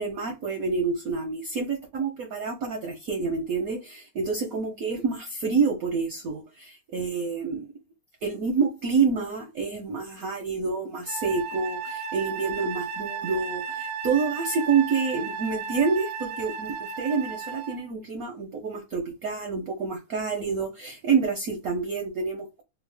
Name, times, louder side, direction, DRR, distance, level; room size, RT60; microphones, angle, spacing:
voice 1, 0.0-7.7 8.2-22.6, right 5 dB, 70° right, 0.8 m, -28 dB
Wind instrument woodwind instrument, 11.1-17.9, right 6 dB, 90° right, 1.4 m, -34 dB
3.4 x 2.0 x 3.2 m
omnidirectional pair, 2.1 m